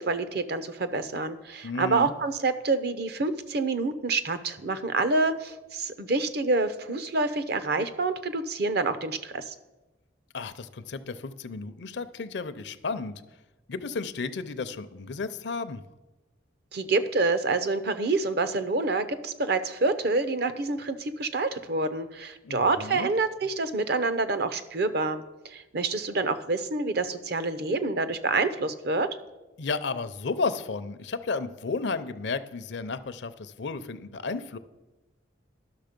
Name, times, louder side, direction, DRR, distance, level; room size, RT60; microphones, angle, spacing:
voice 1, 0.0-9.5 16.7-29.2, right 3 dB, 55° right, 12 dB, 0.6 m, -27 dB
voice 2, 1.6-2.1 10.3-13.2 13.7-15.8 22.4-23.1 29.6-34.6, left 4 dB, 65° left, 12 dB, 0.5 m, -33 dB
11.5 x 6.3 x 5.2 m, 1.1 s
head